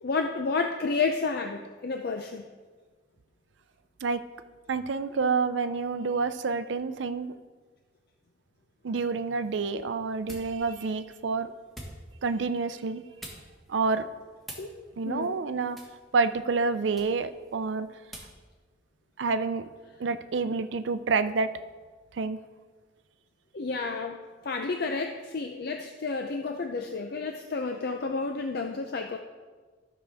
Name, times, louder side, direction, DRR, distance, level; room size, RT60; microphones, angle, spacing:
voice 1, 0.0-2.4 14.6-15.4 23.5-24.2 24.4-29.2, left 4 dB, 55° left, 4 dB, 0.5 m, -31 dB
voice 2, 4.7-7.3 8.8-11.5 12.2-13.0 13.7-14.1 15.0-15.8 16.1-17.9 19.2-19.7 20.0-21.6 22.2-22.4, right 4 dB, 75° right, 11 dB, 0.5 m, -28 dB
sound 1, 9.3-18.4, right 1 dB, ahead, 1.6 m, -50 dB
13.5 x 6.2 x 3.5 m, 1.4 s
head